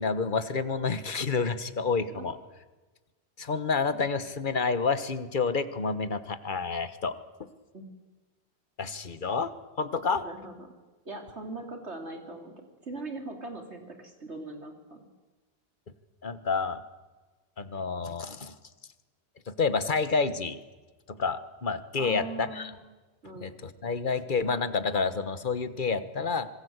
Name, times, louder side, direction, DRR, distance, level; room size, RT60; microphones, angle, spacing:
voice 1, 0.0-2.4 3.4-7.1 8.8-9.5 9.8-10.2 16.2-16.8 17.6-18.5 19.5-20.6 21.1-22.7 23.4-26.5, left 4 dB, 50° left, 12 dB, 1.4 m, -29 dB
voice 2, 10.2-10.7 11.1-15.1 22.0-22.8 23.2-23.5, right 2 dB, 80° right, 4 dB, 3.7 m, -40 dB
26.0 x 21.5 x 8.1 m, 1.3 s
omnidirectional pair, 1.1 m